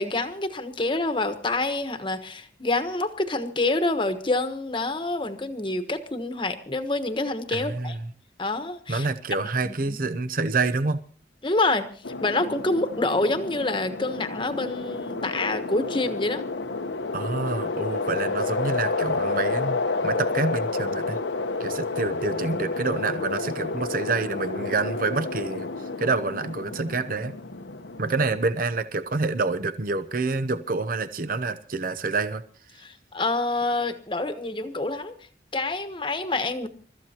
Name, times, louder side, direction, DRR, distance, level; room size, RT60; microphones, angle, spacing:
voice 1, 0.0-7.9 8.4-9.1 9.6-10.0 11.4-11.9 12.2-16.4 32.8-35.2 35.5-36.7, left 2 dB, 25° left, 9 dB, 1.2 m, -27 dB
voice 2, 7.5-8.1 8.9-11.0 17.1-21.2 21.6-27.3 28.0-32.4, right 3 dB, 50° right, 12 dB, 0.7 m, -27 dB
sound 1, 12.0-28.4, left 3 dB, 85° left, 1.0 m, -30 dB
29.0 x 13.5 x 2.9 m, 0.43 s
head